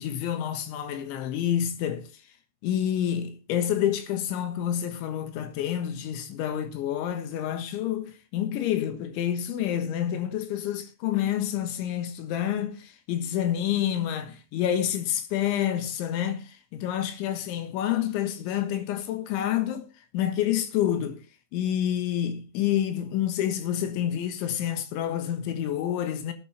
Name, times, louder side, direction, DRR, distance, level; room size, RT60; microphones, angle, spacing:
voice 1, 0.0-2.1 2.6-19.9 20.1-21.2 21.5-26.3, left 10 dB, 75° left, 3.5 m, -28 dB
20.0 x 9.1 x 2.8 m
omnidirectional pair, 5.7 m